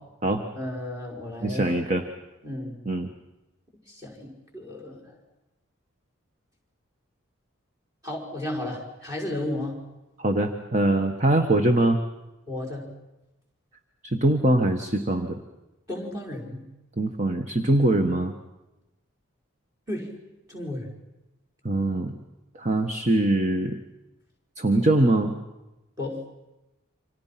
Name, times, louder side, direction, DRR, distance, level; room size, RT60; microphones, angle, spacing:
voice 1, 0.5-1.6 2.4-2.8 3.9-5.2 8.0-9.8 12.5-12.9 15.9-16.6 19.9-20.1 20.5-20.9 26.0-26.2, left 1 dB, 15° right, -1 dB, 5.5 m, -33 dB
voice 2, 1.4-2.0 2.9-3.1 10.2-12.0 14.0-15.4 17.0-18.3 21.6-22.1 22.5-23.8 24.6-25.3, right 1 dB, 35° right, 6 dB, 1.3 m, -22 dB
29.0 x 26.0 x 5.9 m, 0.99 s
head